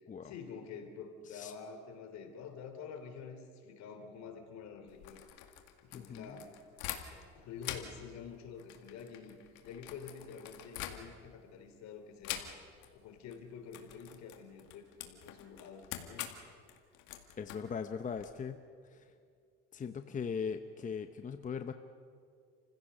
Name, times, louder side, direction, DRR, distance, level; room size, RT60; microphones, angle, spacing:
voice 1, 0.2-5.2 5.9-6.5 7.3-9.4 9.6-12.4 12.9-16.3, left 6 dB, 65° left, 6 dB, 3.3 m, -48 dB
sound 1, 4.9-7.3 7.6-11.4 12.2-12.9 13.2-13.4 13.7-18.3, left 12 dB, 85° left, 2.1 m, -45 dB
voice 2, 5.9-6.4 17.4-18.6 18.9-19.1 19.7-21.7, left 6 dB, 25° left, 8 dB, 0.9 m, -39 dB
28.5 x 16.0 x 6.7 m, 2.2 s
cardioid pair, 110°, 30 cm